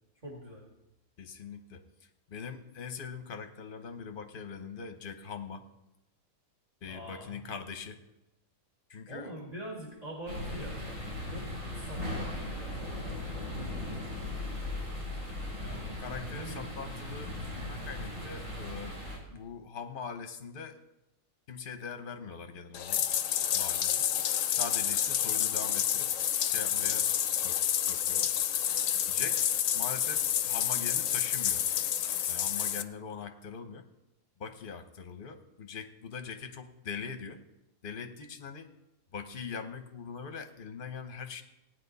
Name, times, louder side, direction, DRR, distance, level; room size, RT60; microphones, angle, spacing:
voice 1, 0.2-0.7 6.8-7.4 9.1-10.9 11.3-11.4 11.7-13.7 16.1-16.7, right 1 dB, 25° right, -4 dB, 2.1 m, -44 dB
voice 2, 1.2-5.7 6.8-8.0 8.9-9.3 15.6-19.0 19.3-20.8 21.5-23.1 23.4-24.0 24.6-26.1 26.4-27.1 27.4-27.6 27.9-28.3 29.1-31.7 32.3-33.8 34.4-37.4 37.8-38.7 39.1-41.4, left 6 dB, 45° left, 7 dB, 1.0 m, -42 dB
sound 1, 10.3-19.2, left 1 dB, 65° right, 4.0 m, -38 dB
Bathtub (filling or washing), 22.7-32.8, left 10 dB, 75° left, 1.0 m, -29 dB
17.0 x 9.5 x 4.1 m, 0.92 s
omnidirectional pair, 1.5 m